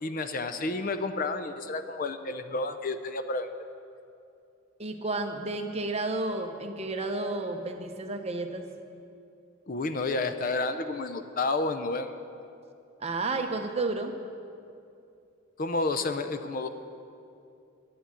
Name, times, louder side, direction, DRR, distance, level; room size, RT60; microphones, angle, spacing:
voice 1, 0.0-3.5 9.7-12.1 15.6-16.7, left 3 dB, 40° left, 9 dB, 0.5 m, -30 dB
voice 2, 4.8-8.7 13.0-14.1, right 2 dB, 30° right, 5 dB, 0.8 m, -31 dB
12.0 x 7.6 x 9.8 m, 2.6 s
head